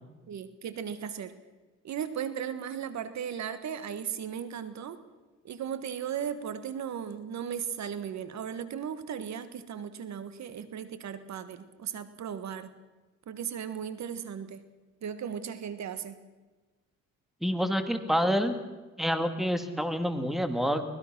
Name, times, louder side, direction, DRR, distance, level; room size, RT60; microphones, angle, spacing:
voice 1, 0.3-1.3 1.8-5.0 5.4-12.7 13.3-14.6 15.0-16.2, right 8 dB, 65° right, 12 dB, 1.6 m, -36 dB
voice 2, 17.4-18.6 19.0-20.9, equal, ahead, 8 dB, 2.1 m, -27 dB
24.0 x 19.5 x 6.1 m, 1.2 s
cardioid pair, 90°, 30 cm